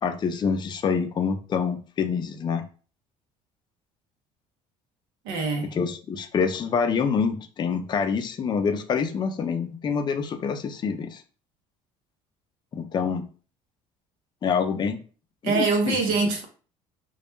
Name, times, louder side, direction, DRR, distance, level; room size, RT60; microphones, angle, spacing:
voice 1, 0.0-2.7 5.7-11.2 12.7-13.2 14.4-15.0 15.4-16.0, left 6 dB, 30° left, 0.4 m, -26 dB
voice 2, 5.2-5.7 15.4-16.4, right 4 dB, 80° right, 0.6 m, -24 dB
2.2 x 2.1 x 2.9 m
supercardioid pair, 80°, 14 cm